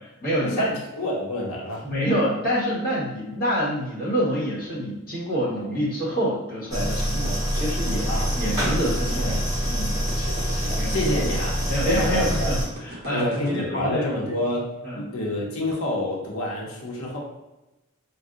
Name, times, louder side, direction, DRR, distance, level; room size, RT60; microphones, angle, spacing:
voice 1, 0.2-0.8 1.8-9.4 9.7-10.0 10.8-11.1 11.7-14.1 14.8-15.0, equal, 45° left, -8 dB, 1.3 m, -27 dB
voice 2, 1.0-1.9 8.1-8.3 9.2-9.4 10.1-12.5 13.1-17.2, left 1 dB, 75° left, -2 dB, 0.7 m, -28 dB
furnace propane pump humming rattle, 6.7-12.6, equal, 15° right, 0.9 m, -25 dB
sound 1, 7.2-13.5, right 1 dB, 45° right, 0.5 m, -39 dB
2.6 x 2.1 x 3.6 m, 1.0 s
head